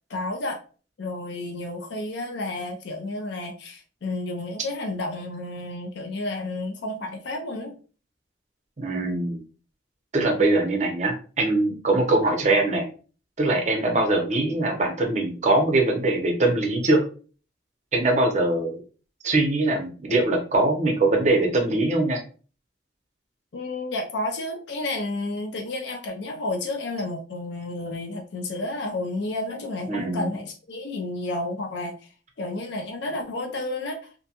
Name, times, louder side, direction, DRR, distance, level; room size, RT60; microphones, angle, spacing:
voice 1, 0.1-0.6 1.0-7.7 11.7-11.8 23.5-31.9 32.4-34.0, left 2 dB, 65° left, 3 dB, 0.4 m, -31 dB
voice 2, 8.8-9.4 10.1-12.9 13.4-17.0 17.9-18.8 19.2-22.2 29.9-30.3, right 2 dB, 40° right, 2 dB, 0.6 m, -22 dB
2.5 x 2.2 x 2.7 m, 0.38 s
head